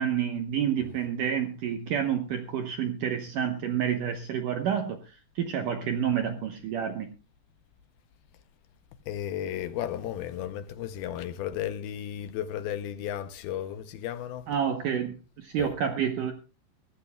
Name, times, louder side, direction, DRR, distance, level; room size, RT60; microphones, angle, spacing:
voice 1, 0.0-7.1 14.5-16.3, right 8 dB, 80° right, 1.8 m, -29 dB
voice 2, 9.1-14.5 15.6-15.7, left 10 dB, 80° left, 2.3 m, -34 dB
23.0 x 16.0 x 2.3 m
omnidirectional pair, 5.2 m